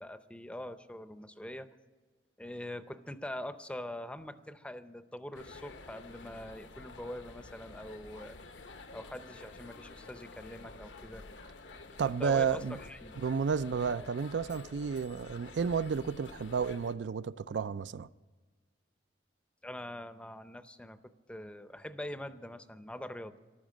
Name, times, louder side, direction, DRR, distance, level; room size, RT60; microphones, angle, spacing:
voice 1, 0.0-1.7 2.4-8.4 8.9-11.2 12.0-13.2 19.6-23.3, left 1 dB, 5° left, 0.6 m, -43 dB
sound 1, 5.3-16.9, left 3 dB, 85° left, 1.0 m, -50 dB
voice 2, 12.0-12.8 13.2-18.1, right 6 dB, 75° right, 0.4 m, -31 dB
14.0 x 12.0 x 7.3 m
head